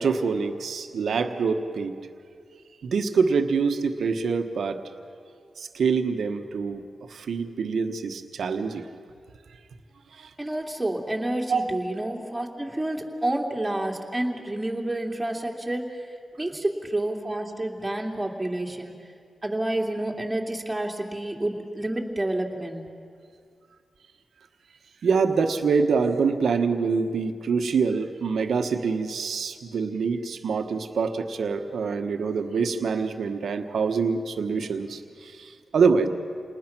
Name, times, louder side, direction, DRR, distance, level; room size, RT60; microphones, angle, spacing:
voice 1, 0.0-1.9 2.8-4.8 5.6-6.8 7.1-8.9 10.1-10.3 11.5-11.6 25.0-36.1, right 5 dB, 80° right, 7 dB, 1.2 m, -25 dB
voice 2, 10.4-16.1 16.4-18.9 19.4-22.8, right 1 dB, 15° right, 0 dB, 3.0 m, -29 dB
28.0 x 20.0 x 6.1 m, 2.2 s
cardioid pair, 60°, 0 cm